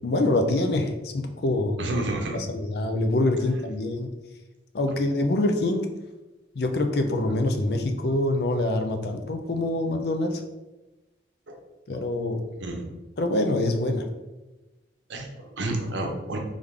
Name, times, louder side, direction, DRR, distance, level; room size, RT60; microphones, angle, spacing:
voice 1, 0.0-2.0 2.5-4.1 4.7-5.8 6.6-10.4 11.9-12.4 13.2-14.0, left 2 dB, 60° left, 5 dB, 0.5 m, -25 dB
voice 2, 1.8-2.4 11.5-11.6 12.6-13.0 15.1-16.4, right 1 dB, 80° right, 2 dB, 0.8 m, -30 dB
3.6 x 3.4 x 3.6 m, 1.1 s
head